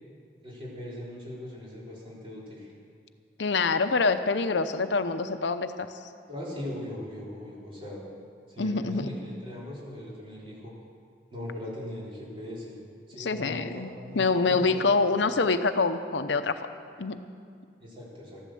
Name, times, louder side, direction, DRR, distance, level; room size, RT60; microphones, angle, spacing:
voice 1, 0.4-2.7 6.3-8.0 8.5-10.7 11.3-12.8 13.1-14.8 17.8-18.4, left 1 dB, 30° right, -6 dB, 4.2 m, -39 dB
voice 2, 3.4-5.9 8.6-9.2 13.2-13.9 14.2-16.6 17.0-17.2, left 4 dB, 80° left, 10 dB, 0.7 m, -26 dB
14.0 x 11.5 x 7.8 m, 2.2 s
head